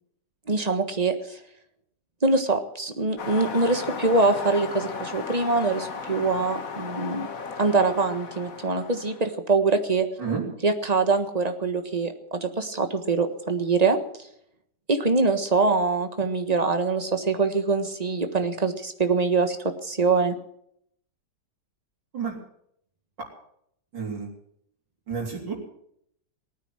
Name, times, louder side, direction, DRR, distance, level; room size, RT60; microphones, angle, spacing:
voice 1, 0.5-1.4 2.2-7.3 7.6-10.1 10.6-14.0 14.9-19.6 19.8-20.3, right 3 dB, 25° right, 7 dB, 1.4 m, -24 dB
sound 1, 3.2-9.3, left 5 dB, 50° left, 1.8 m, -35 dB
voice 2, 23.9-24.3 25.1-25.6, right 6 dB, 80° right, -2 dB, 4.3 m, -30 dB
19.0 x 9.4 x 7.9 m, 0.71 s
omnidirectional pair, 1.9 m